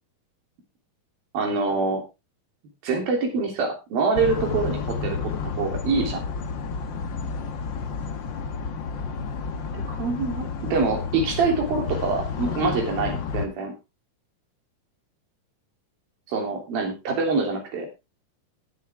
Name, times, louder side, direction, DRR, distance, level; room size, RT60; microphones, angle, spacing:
voice 1, 1.3-2.0 2.8-6.3 9.7-13.7 16.3-17.9, right 4 dB, 85° right, 2 dB, 5.0 m, -25 dB
sound 1, 4.1-13.5, left 5 dB, 60° left, 1.2 m, -31 dB
18.5 x 7.5 x 3.5 m, 0.26 s
omnidirectional pair, 4.1 m